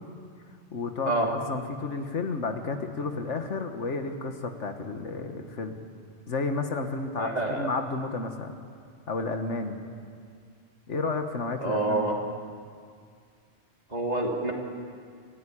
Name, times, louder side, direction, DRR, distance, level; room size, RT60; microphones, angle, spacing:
voice 1, 0.7-5.8 6.3-8.6 9.1-9.8 10.9-12.2, left 3 dB, 85° left, 5 dB, 1.8 m, -32 dB
voice 2, 7.2-7.7 11.6-12.2 13.9-14.5, right 2 dB, 35° right, -1 dB, 3.2 m, -27 dB
29.0 x 14.5 x 10.0 m, 2.2 s
omnidirectional pair, 1.2 m